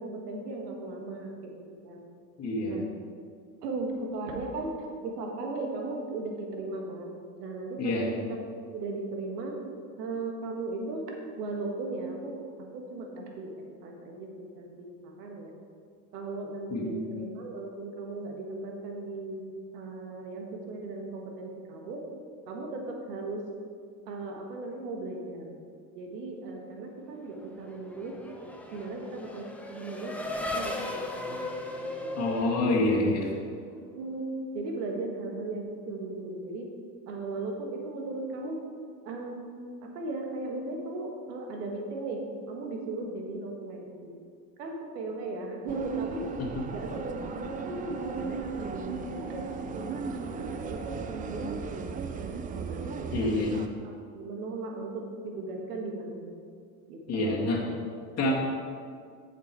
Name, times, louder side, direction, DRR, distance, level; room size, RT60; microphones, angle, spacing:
voice 1, 0.0-1.6 1.8-2.1 2.6-2.9 3.6-7.1 7.4-8.0 8.3-8.4 8.7-9.6 10.0-11.1 11.4-12.4 12.7-15.5 16.1-19.4 19.7-22.0 22.5-23.4 24.1-25.6 25.9-28.1 28.7-32.2 32.7-32.9 33.9-34.3 34.5-36.7 37.1-38.6 39.0-39.5 39.9-44.1 44.6-46.3 46.7-53.3 53.8-56.3 56.9-57.7, right 2 dB, 75° right, 1 dB, 1.7 m, -37 dB
voice 2, 2.4-2.8 7.8-8.1 16.7-17.0 32.2-33.3 46.4-46.6 53.1-53.6 57.1-57.6 58.2-58.3, left 2 dB, 30° left, -4 dB, 1.8 m, -27 dB
Race car auto racing / Accelerating revving vroom, 27.4-33.5, left 1 dB, 5° left, 0.8 m, -37 dB
sound 1, 45.7-53.7, right 5 dB, 20° right, 0.4 m, -37 dB
7.6 x 6.9 x 4.7 m, 2.2 s
hypercardioid pair, 90°, 49 cm